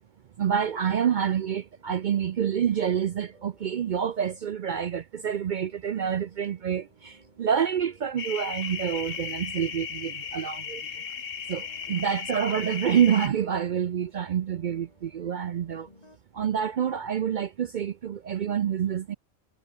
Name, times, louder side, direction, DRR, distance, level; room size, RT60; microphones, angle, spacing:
voice 1, 0.4-10.9 11.5-15.9 16.3-19.1, right 8 dB, 65° right, 0.4 m, -27 dB
sound 1, 0.7-4.9 5.4-11.0 11.6-16.2, left 1 dB, 30° left, 4.5 m, -60 dB
sound 2, 8.2-13.3, left 7 dB, 75° left, 1.7 m, -36 dB
omnidirectional pair, 1.3 m